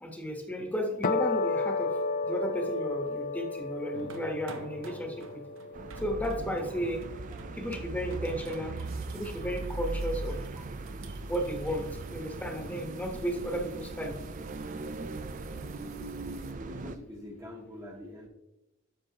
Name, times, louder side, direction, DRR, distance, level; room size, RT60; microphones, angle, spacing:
voice 1, 0.0-1.9 2.2-5.4 6.0-7.1 7.5-8.8 9.1-10.4 11.3-14.2, equal, 10° left, 2 dB, 1.1 m, -33 dB
sound 1, 1.0-7.5, left 3 dB, 40° left, 0.5 m, -33 dB
sound 2, 3.9-16.5, right 3 dB, 65° right, 0.9 m, -51 dB
sound 3, 5.7-17.0, right 2 dB, 40° right, 0.4 m, -39 dB
voice 2, 15.7-16.2 16.6-18.3, left 1 dB, 15° right, 0 dB, 0.9 m, -46 dB
10.0 x 6.4 x 2.9 m, 0.97 s
head